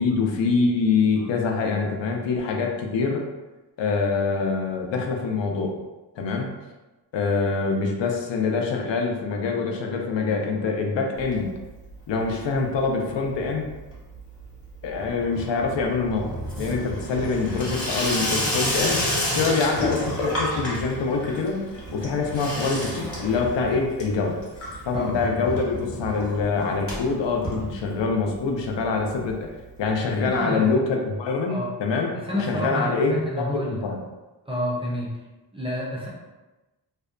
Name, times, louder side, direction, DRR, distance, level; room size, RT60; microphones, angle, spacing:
voice 1, 0.0-3.2 3.8-5.7 6.2-6.5 7.1-11.5 12.1-13.7 14.8-16.3 16.6-19.0 19.3-21.6 21.9-24.4 24.8-32.1 32.4-34.0, left 4 dB, 80° left, 2 dB, 0.5 m, -25 dB
Water tap faucet / Sink (filling or washing), 11.2-11.9 12.2-12.8 13.1-28.3 28.7-28.8 29.0-29.1 29.3-29.4 30.4-30.5, left 1 dB, 30° left, 0.8 m, -31 dB
voice 2, 30.2-30.8 31.5-31.7 32.1-33.9 34.5-35.1 35.5-36.1, equal, 15° right, -5 dB, 0.4 m, -29 dB
2.7 x 2.1 x 2.4 m, 1.1 s
wide cardioid pair, 140°, 44 cm